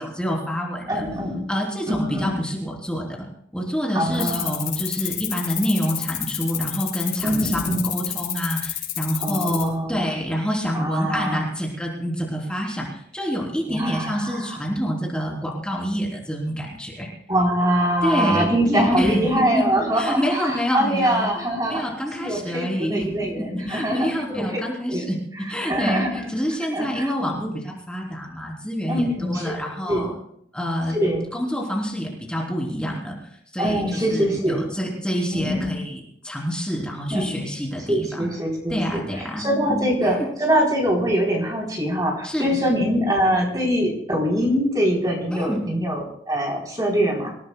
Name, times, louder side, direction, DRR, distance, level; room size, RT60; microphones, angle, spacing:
voice 1, 0.0-1.0 1.5-3.2 3.5-17.1 18.0-19.7 19.9-21.3 21.7-25.2 25.5-29.1 29.3-30.1 30.5-31.0 31.3-33.1 33.5-38.3 38.7-40.3 42.2-42.6 45.3-45.6, equal, 5° left, -3 dB, 3.6 m, -27 dB
voice 2, 0.9-1.5 1.9-2.4 3.9-4.6 7.2-7.9 9.2-10.1 10.7-11.4 13.7-14.5 17.3-21.8 22.2-24.6 24.9-25.0 25.6-26.3 26.7-27.5 28.9-29.5 29.9-30.1 30.9-31.3 33.6-34.7 35.3-35.8 37.1-37.3 37.9-39.0 39.4-47.4, equal, 20° right, -2 dB, 3.8 m, -23 dB
sound 1, 4.1-9.6, left 12 dB, 50° left, 5.6 m, -29 dB
26.5 x 17.0 x 2.3 m, 0.70 s
head